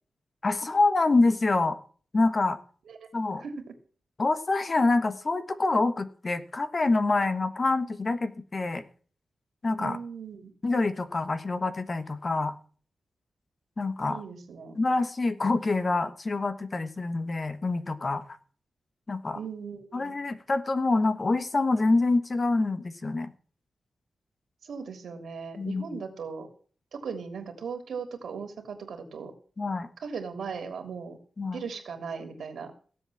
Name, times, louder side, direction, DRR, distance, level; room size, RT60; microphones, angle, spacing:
voice 1, 0.4-1.8 2.1-2.6 3.1-3.4 4.2-8.8 9.6-10.0 10.6-12.5 13.8-14.2 14.7-18.2 19.1-19.4 19.9-23.3 25.6-25.8 29.6-29.9 31.4-31.6, left 3 dB, 35° left, 11 dB, 1.3 m, -26 dB
voice 2, 3.4-3.7 9.8-10.5 14.1-14.8 19.3-20.2 24.6-26.5 26.9-29.3 30.0-31.2 31.5-32.7, right 5 dB, 90° right, 5 dB, 3.0 m, -38 dB
16.5 x 7.8 x 7.1 m, 0.44 s
wide cardioid pair, 110°, 0 cm